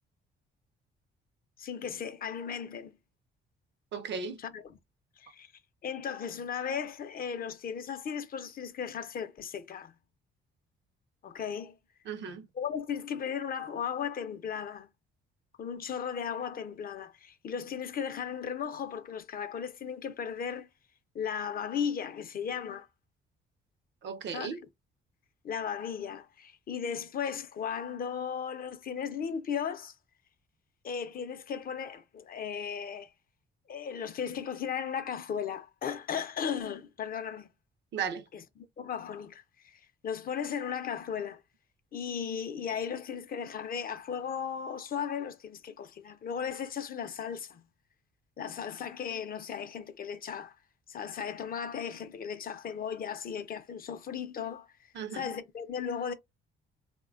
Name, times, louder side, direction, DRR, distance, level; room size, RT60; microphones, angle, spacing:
voice 1, 1.6-2.9 4.4-4.8 5.2-5.5 5.8-9.9 11.2-11.8 12.5-14.9 15.6-20.7 21.1-22.9 24.3-24.6 25.4-29.9 30.8-33.1 33.7-37.5 38.3-41.4 41.9-47.6 48.4-50.6 50.9-54.7 55.1-56.1, left 7 dB, 50° left, 0.5 m, -36 dB
voice 2, 3.9-4.4 12.1-12.5 24.0-24.6 37.9-38.2 55.0-55.3, right 6 dB, 65° right, 0.6 m, -35 dB
3.1 x 2.1 x 2.4 m
cardioid pair, 90°, 20 cm